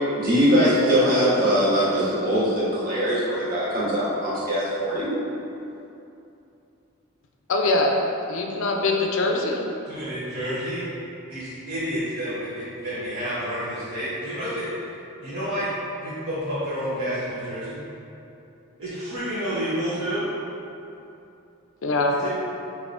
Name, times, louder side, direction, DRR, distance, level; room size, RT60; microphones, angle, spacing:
voice 1, 0.2-5.1, equal, 40° right, -10 dB, 1.2 m, -21 dB
voice 2, 7.5-7.9 8.3-9.6 21.8-22.2, left 2 dB, 65° left, 1 dB, 0.5 m, -22 dB
voice 3, 9.9-10.8 11.3-14.6 15.2-15.7 16.0-17.8 18.8-20.3 22.2-22.3, equal, 65° right, -13 dB, 0.9 m, -29 dB
5.4 x 3.2 x 2.5 m, 2.8 s
head